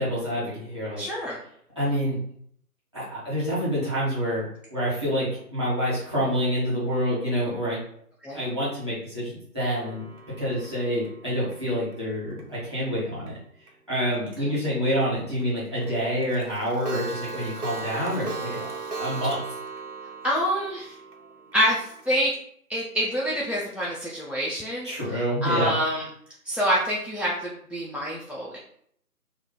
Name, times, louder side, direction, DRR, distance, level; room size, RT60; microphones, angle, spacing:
voice 1, 0.0-1.0 1.7-2.2 2.9-4.4 4.7-7.8 8.3-10.0 10.4-13.3 13.9-18.7 19.0-19.4 24.8-25.7, equal, 20° right, -12 dB, 1.1 m, -27 dB
voice 2, 1.0-1.4 8.2-8.4 20.2-20.9 21.5-22.3 22.7-24.9 25.4-26.1 26.5-28.6, equal, 5° right, -5 dB, 0.3 m, -26 dB
Clock, 9.8-12.8 13.3-13.4 13.7-13.8 14.1-14.2 14.5-14.6 15.0-15.1 15.4-15.5 15.8-15.9 16.2-22.1, right 4 dB, 75° right, 0.9 m, -38 dB
2.9 x 2.2 x 3.6 m, 0.66 s
figure-of-eight pair, 165°, 47 cm